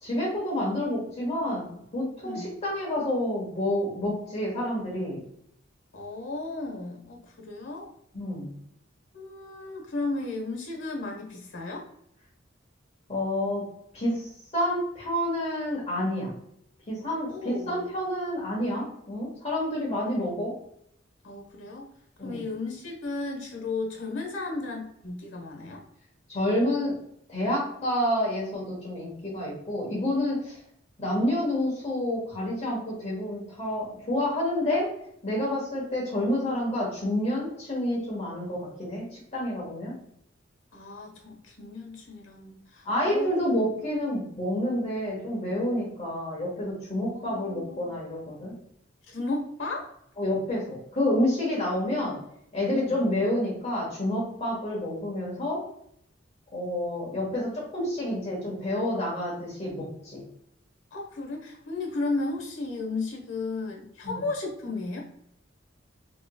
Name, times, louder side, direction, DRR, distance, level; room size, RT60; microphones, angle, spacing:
voice 1, 0.0-1.7 1.9-5.2 8.1-8.5 13.1-13.6 13.9-16.3 16.9-20.5 22.2-22.4 26.3-26.9 27.3-30.5 31.0-34.9 35.2-40.0 42.8-48.5 50.2-52.2 52.5-55.6 56.5-60.2 64.0-64.2, left 1 dB, 35° left, -4 dB, 1.3 m, -29 dB
voice 2, 5.9-7.9 9.1-11.9 17.3-17.9 21.2-21.9 22.2-25.8 40.7-43.3 46.9-47.9 49.1-49.9 52.7-53.0 60.9-65.0, left 3 dB, 80° left, 1 dB, 1.2 m, -34 dB
4.2 x 3.0 x 2.3 m, 0.71 s
head